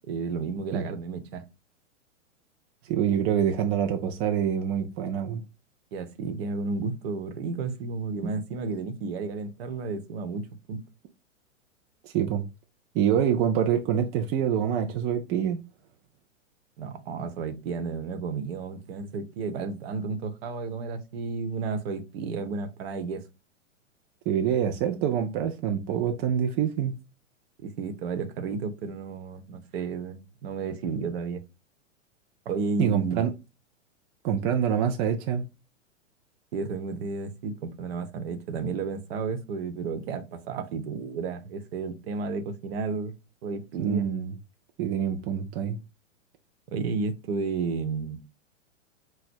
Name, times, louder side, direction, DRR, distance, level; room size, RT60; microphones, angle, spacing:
voice 1, 0.1-1.4 5.9-10.8 16.8-23.2 27.6-31.4 32.5-33.3 36.5-43.1 43.4-44.1 46.7-48.2, right 4 dB, 55° right, 0.9 m, -32 dB
voice 2, 2.9-5.4 8.2-8.3 12.0-12.4 12.9-15.6 24.3-26.9 32.8-33.3 34.2-35.4 43.8-44.3 44.8-45.8, right 8 dB, 25° right, 0.4 m, -26 dB
4.7 x 2.1 x 4.3 m
hypercardioid pair, 115°, 38 cm